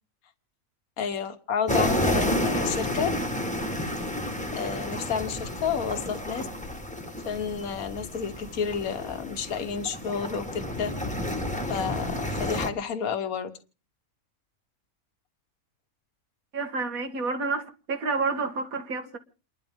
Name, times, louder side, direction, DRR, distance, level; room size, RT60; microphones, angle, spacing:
voice 1, 1.0-3.1 4.6-6.5 7.3-10.9 11.7-13.5, left 7 dB, 75° left, 1.6 m, -30 dB
sound 1, 1.7-12.7, left 1 dB, 5° left, 1.3 m, -30 dB
voice 2, 16.5-19.2, right 4 dB, 75° right, 2.1 m, -29 dB
29.0 x 12.0 x 3.6 m
omnidirectional pair, 1.5 m